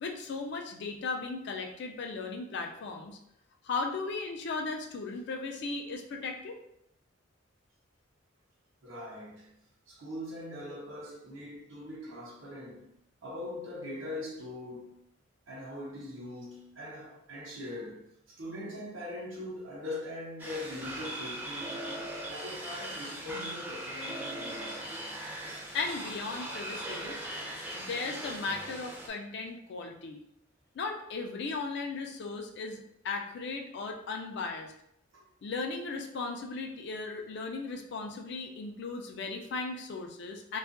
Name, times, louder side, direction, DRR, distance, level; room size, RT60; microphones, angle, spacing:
voice 1, 0.0-3.2 3.6-6.6 25.7-27.2 27.8-30.2 30.8-32.8 33.0-34.7 35.4-40.6, left 4 dB, 60° left, 0.4 m, -36 dB
voice 2, 8.8-9.5 9.9-12.9 13.2-15.0 15.5-18.1 18.4-21.8 22.3-24.8 35.1-35.2, left 1 dB, 80° right, 0.7 m, -41 dB
sound 1, 20.4-29.1, right 1 dB, 10° right, 0.4 m, -39 dB
2.6 x 2.3 x 2.5 m
head